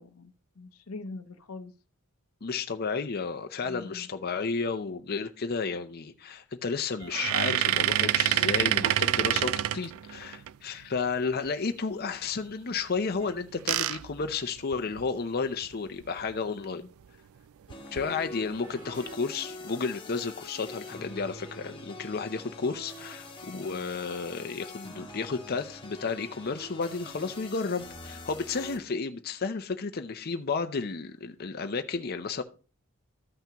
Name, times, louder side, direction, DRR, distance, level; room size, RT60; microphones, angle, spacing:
voice 1, 0.0-1.7 3.6-4.1 16.5-16.9 23.4-23.8, left 3 dB, 90° left, 0.8 m, -43 dB
voice 2, 2.4-16.8 17.9-32.4, left 4 dB, 45° left, 0.6 m, -32 dB
sound 1, 7.0-10.5 13.2-15.1 15.7-15.8 16.0-16.2 17.7-18.0 18.6-19.1, right 12 dB, 70° right, 0.3 m, -27 dB
sound 2, 17.7-28.8, left 2 dB, 25° left, 1.6 m, -45 dB
13.5 x 5.8 x 2.9 m
head